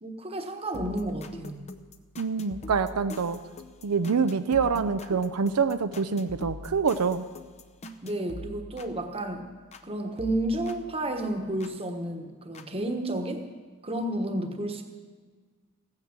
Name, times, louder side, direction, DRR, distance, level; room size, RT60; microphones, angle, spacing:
voice 1, 0.0-1.6 8.0-9.5 9.8-13.5 13.8-14.8, right 1 dB, 25° right, 5 dB, 1.2 m, -31 dB
sound 1, 0.7-9.9 10.2-11.8 12.5-12.6, left 2 dB, 30° left, 0.7 m, -44 dB
voice 2, 2.2-3.4 3.8-7.2, right 5 dB, 85° right, 10 dB, 0.6 m, -26 dB
15.5 x 9.7 x 7.4 m, 1.5 s
head